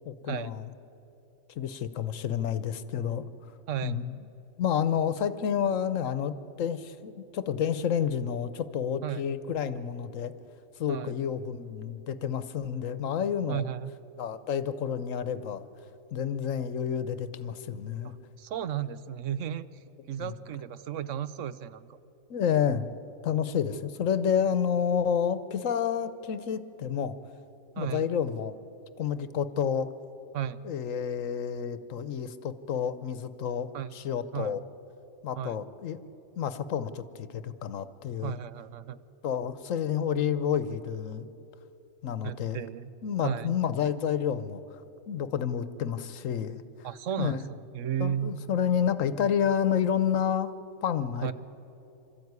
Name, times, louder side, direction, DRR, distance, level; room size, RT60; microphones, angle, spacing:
voice 1, 0.1-0.7 1.5-3.2 3.8-4.2 4.6-10.3 10.8-13.7 14.2-15.7 16.1-18.1 20.2-20.3 22.3-22.9 23.2-27.2 27.8-28.6 29.0-29.9 30.6-34.6 35.2-36.0 36.4-38.3 39.2-41.3 42.0-42.6 43.0-44.6 45.1-46.9 47.2-47.4 48.0-50.5 50.8-51.3, left 8 dB, 85° left, 13 dB, 1.2 m, -29 dB
voice 2, 3.7-4.0 9.0-9.2 10.9-11.2 13.5-13.9 18.4-19.6 20.1-22.0 27.8-28.0 30.3-30.6 33.7-33.9 34.3-34.6 35.4-35.6 38.2-39.0 42.2-42.9 43.2-43.5 46.8-48.3 51.2-51.3, right 10 dB, 75° right, 15 dB, 1.0 m, -34 dB
26.5 x 13.5 x 9.6 m, 3.0 s
omnidirectional pair, 1.3 m